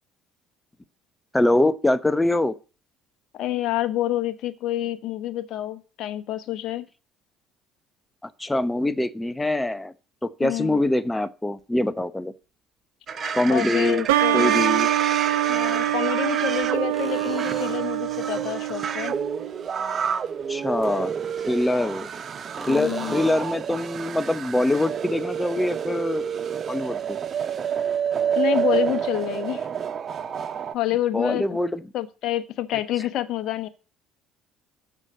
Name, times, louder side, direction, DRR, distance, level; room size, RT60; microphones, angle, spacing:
voice 1, 1.3-2.5 8.4-9.9 10.2-12.3 13.3-14.0 14.3-14.9 20.5-21.1 21.5-22.1 22.7-26.3 26.7-27.0 31.1-31.8, left 1 dB, 10° left, 14 dB, 0.9 m, -23 dB
voice 2, 3.3-6.9 10.4-10.8 13.1-14.6 15.5-19.2 22.7-23.2 28.3-29.7 30.7-31.6 31.9-33.7, left 13 dB, 65° left, 11 dB, 1.1 m, -28 dB
sound 1, 11.6-11.7 13.8-13.9 15.1-15.9 16.9-18.1 21.2-22.3 22.6-23.6 27.3-27.4, right 1 dB, 10° right, 2.4 m, -41 dB
sound 2, 13.1-30.7, right 7 dB, 45° right, 0.8 m, -29 dB
sound 3, 14.1-19.5, right 14 dB, 85° right, 0.7 m, -25 dB
7.4 x 6.3 x 7.8 m, 0.35 s
hypercardioid pair, 70°, 0 cm